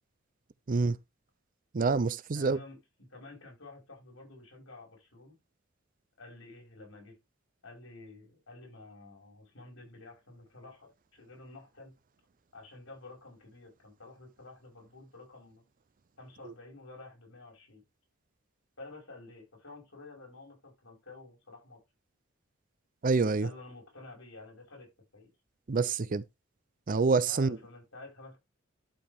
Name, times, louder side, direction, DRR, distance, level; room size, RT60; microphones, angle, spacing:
voice 1, 1.7-2.6 23.0-23.5 25.7-26.2 26.9-27.6, right 4 dB, 45° right, 0.5 m, -27 dB
voice 2, 2.3-5.4 6.2-7.2 7.6-11.9 12.5-15.6 16.2-17.8 18.8-21.8 23.4-25.3 27.3-28.4, left 2 dB, 85° left, 5.1 m, -50 dB
12.0 x 4.6 x 3.5 m
head